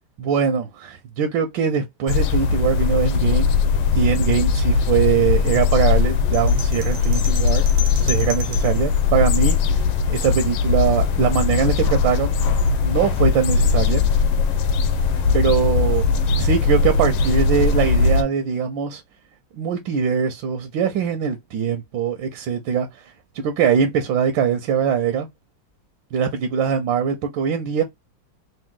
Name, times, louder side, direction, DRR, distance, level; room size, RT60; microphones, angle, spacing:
voice 1, 0.2-3.5 3.9-7.6 8.0-9.8 10.1-12.3 12.8-14.0 15.3-16.1 16.4-19.0 19.6-22.9 23.4-25.3 26.1-27.8, right 7 dB, 80° right, 1.4 m, -22 dB
sound 1, 2.1-18.2, left 5 dB, 75° left, 1.3 m, -19 dB
sound 2, 6.3-8.8, left 3 dB, 40° right, 0.7 m, -33 dB
3.6 x 2.6 x 3.7 m
omnidirectional pair, 2.1 m